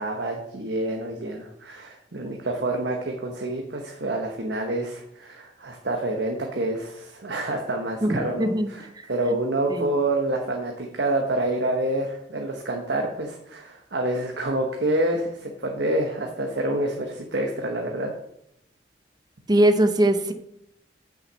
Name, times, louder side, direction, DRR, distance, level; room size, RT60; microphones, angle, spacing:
voice 1, 0.0-18.1, right 1 dB, 70° right, 2 dB, 1.0 m, -27 dB
voice 2, 8.0-8.7 9.0-9.1 9.7-9.9 19.5-20.3, right 1 dB, 20° right, 7 dB, 0.7 m, -21 dB
6.5 x 5.7 x 6.9 m, 0.79 s
head